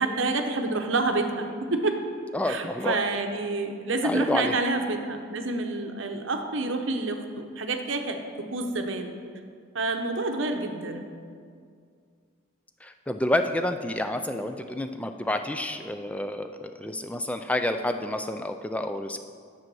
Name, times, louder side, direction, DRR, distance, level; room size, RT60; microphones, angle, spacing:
voice 1, 0.0-2.0 2.5-9.1 9.7-11.1, right 2 dB, 65° right, 5 dB, 0.8 m, -28 dB
voice 2, 2.3-3.0 4.0-4.6 12.8-19.2, left 1 dB, 5° left, 7 dB, 0.3 m, -29 dB
7.9 x 7.0 x 6.1 m, 2.2 s
head